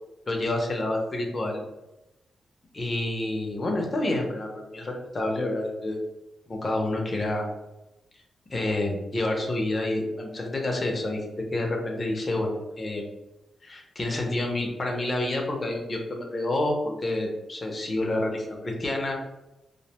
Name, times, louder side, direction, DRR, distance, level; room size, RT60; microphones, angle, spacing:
voice 1, 0.3-1.6 2.7-6.0 6.5-7.5 8.5-13.1 13.6-19.2, left 1 dB, 30° left, 1 dB, 0.5 m, -28 dB
2.5 x 2.1 x 2.8 m, 0.97 s
wide cardioid pair, 135°, 0 cm